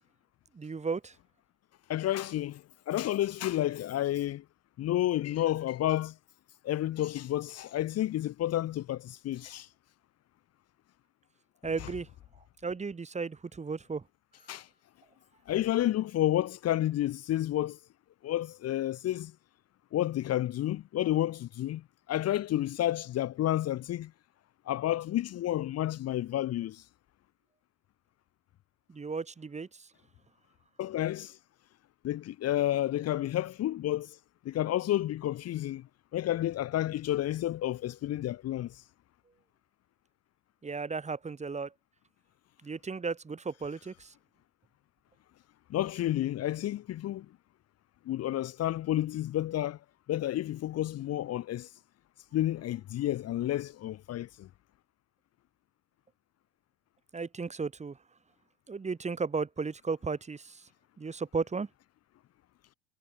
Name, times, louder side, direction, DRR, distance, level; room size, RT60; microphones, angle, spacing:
voice 1, 0.5-1.1 11.6-12.1 12.6-14.0 28.9-29.9 40.6-41.7 42.6-44.1 57.1-58.0 58.7-60.6 61.0-61.7, right 4 dB, 20° right, 1.8 m, -35 dB
voice 2, 1.9-4.4 4.8-6.2 6.6-9.7 11.8-11.9 14.5-14.7 15.5-17.8 18.2-19.3 19.9-24.1 24.7-26.8 30.8-31.4 32.0-34.2 34.4-35.9 36.1-38.8 45.7-47.3 48.0-49.8 50.1-51.7 52.3-54.5, left 13 dB, 40° left, 1.2 m, -30 dB
hypercardioid pair, 80°, 38 cm